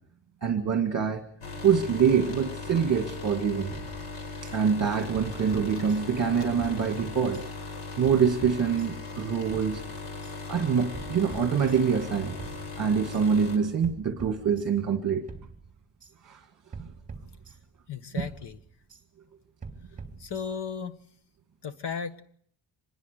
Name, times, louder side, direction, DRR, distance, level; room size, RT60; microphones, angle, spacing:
voice 1, 0.4-1.2 1.6-3.7 4.5-7.5 8.0-9.8 10.5-12.4 12.8-15.2 16.3-16.4 16.8-16.9, right 7 dB, 40° right, 6 dB, 2.0 m, -25 dB
sound 1, 1.4-13.6, left 4 dB, 85° left, 5.9 m, -38 dB
sound 2, 3.7-4.6 5.2-6.3 6.6-7.5 8.0-9.1 9.5-10.4 10.9-12.1 12.4-13.3 13.8-15.0 15.3-16.1 16.7-17.9 18.2-19.0 19.6-20.8, right 4 dB, 15° right, 3.3 m, -45 dB
voice 2, 17.9-18.6 20.2-21.0 21.6-22.2, left 6 dB, 55° left, 12 dB, 1.6 m, -35 dB
25.0 x 21.0 x 6.8 m, 0.63 s
wide cardioid pair, 165°, 50 cm